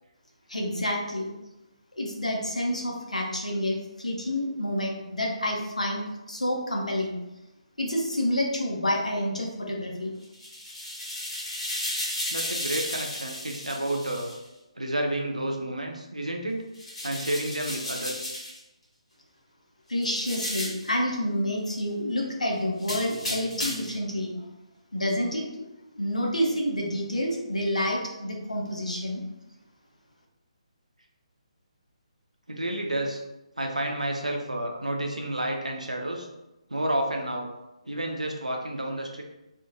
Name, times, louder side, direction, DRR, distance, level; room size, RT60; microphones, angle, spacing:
voice 1, 0.5-1.3 1.9-7.2 7.8-10.1 19.9-24.3 24.9-25.6 25.9-29.2, left 1 dB, 80° left, -1 dB, 0.7 m, -28 dB
sound 1, 10.2-14.4 16.7-18.6 20.0-20.9 22.8-24.0, left 1 dB, 55° left, 1.3 m, -34 dB
voice 2, 12.3-14.3 14.8-16.6 17.0-18.3 32.5-33.2 33.6-36.3 36.7-37.5 37.9-39.2, right 1 dB, 80° right, 2 dB, 0.6 m, -30 dB
3.0 x 2.5 x 2.4 m, 0.97 s
figure-of-eight pair, 140°, 4 cm